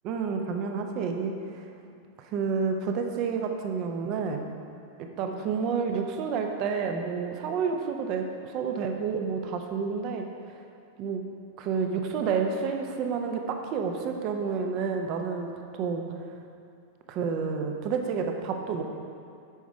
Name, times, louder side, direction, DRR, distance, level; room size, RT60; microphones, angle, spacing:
voice 1, 0.0-1.3 2.2-4.4 5.0-8.3 8.5-10.3 11.0-11.2 11.6-16.1 17.1-18.8, right 5 dB, 40° right, 4 dB, 0.9 m, -29 dB
9.2 x 6.2 x 4.6 m, 2.4 s
figure-of-eight pair, 90°, 0 cm